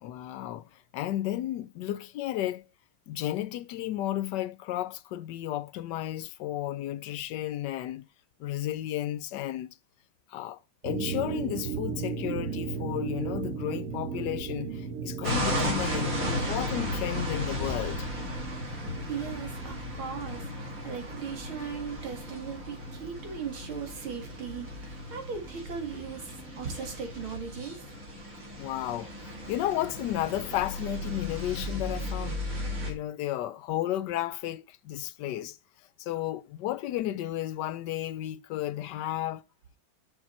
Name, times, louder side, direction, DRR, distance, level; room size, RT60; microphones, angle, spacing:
voice 1, 0.0-2.6 3.1-8.0 8.4-9.7 10.3-16.2 16.5-18.1 28.6-32.4 32.8-35.6 36.0-39.4, left 13 dB, 75° left, 1.0 m, -33 dB
sound 1, 10.8-27.3, right 6 dB, 60° right, 0.9 m, -38 dB
sound 2, 15.2-32.9, left 1 dB, 40° right, 2.6 m, -35 dB
voice 2, 18.6-26.3 26.6-27.8, right 6 dB, 85° right, 2.8 m, -38 dB
6.8 x 6.3 x 4.2 m
omnidirectional pair, 2.2 m